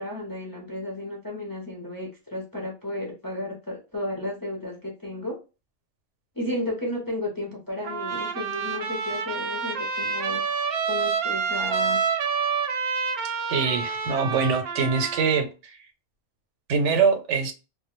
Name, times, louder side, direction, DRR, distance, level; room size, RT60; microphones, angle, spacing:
voice 1, 0.0-5.4 6.4-10.4 10.9-12.0, left 1 dB, 25° left, -2 dB, 0.5 m, -33 dB
Trumpet, 7.8-15.4, right 5 dB, 65° right, 0.7 m, -28 dB
voice 2, 13.5-15.5 16.7-17.5, right 5 dB, 90° right, 6 dB, 0.9 m, -23 dB
2.2 x 2.1 x 3.0 m, 0.30 s
omnidirectional pair, 1.2 m